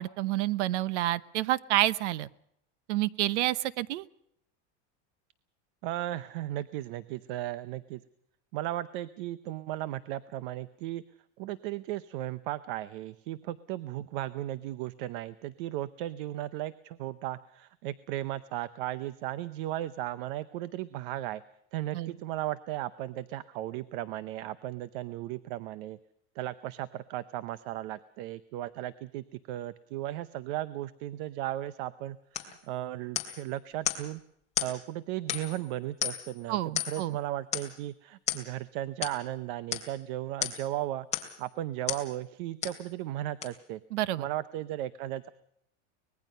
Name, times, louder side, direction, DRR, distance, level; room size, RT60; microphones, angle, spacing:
voice 1, 0.0-2.3 2.9-4.0 21.9-22.1 36.5-37.2 43.9-44.3, right 15 dB, 85° right, 18 dB, 0.9 m, -29 dB
voice 2, 5.8-8.0 8.5-11.0 11.4-21.4 21.7-26.0 26.4-34.2 34.6-41.1 41.4-43.8 44.2-45.3, right 14 dB, 50° right, 15 dB, 0.7 m, -36 dB
sound 1, 32.3-32.6 33.2-33.4 33.9-34.1 34.6-34.8 35.3-35.6 36.0-36.4 36.8-37.1 37.5-37.8 38.3-38.5 39.0-39.2 39.7-39.9 40.4-40.7 41.1-41.4 41.9-42.1 42.6-42.8 43.4-43.5, left 10 dB, 20° left, 2.5 m, -33 dB
24.5 x 20.5 x 5.5 m, 0.75 s
supercardioid pair, 175°, 35 cm